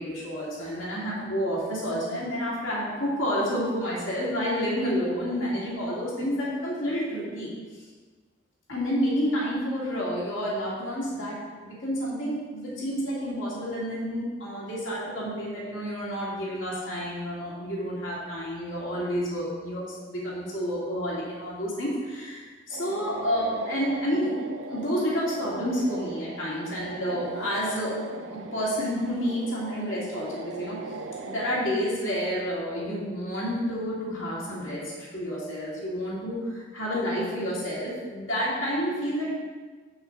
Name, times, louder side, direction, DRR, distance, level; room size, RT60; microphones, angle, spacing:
voice 1, 0.0-7.8 8.7-24.3 24.7-28.0 28.3-30.8 31.2-39.3, equal, 85° left, -6 dB, 2.4 m, -29 dB
sound 1, 22.7-31.8, right 3 dB, 85° right, 0.6 m, -40 dB
6.2 x 5.5 x 6.5 m, 1.5 s
head